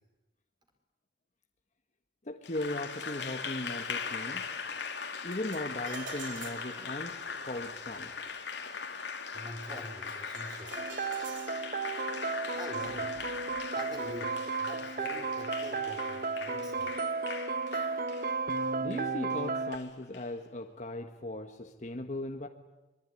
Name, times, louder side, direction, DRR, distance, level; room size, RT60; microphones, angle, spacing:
voice 1, 2.3-4.4 5.2-7.2 7.4-8.1 18.8-22.5, left 1 dB, 40° left, 4 dB, 1.5 m, -38 dB
Applause, 2.4-20.3, left 5 dB, 70° left, 2.8 m, -40 dB
sound 1, 5.3-14.8, right 5 dB, 90° right, 2.8 m, -50 dB
voice 2, 9.3-10.8 12.5-13.1 13.7-16.9, equal, 25° right, 4 dB, 4.5 m, -45 dB
sound 2, 10.8-19.8, right 4 dB, 50° right, 1.2 m, -34 dB
25.5 x 22.5 x 9.9 m, 1.1 s
head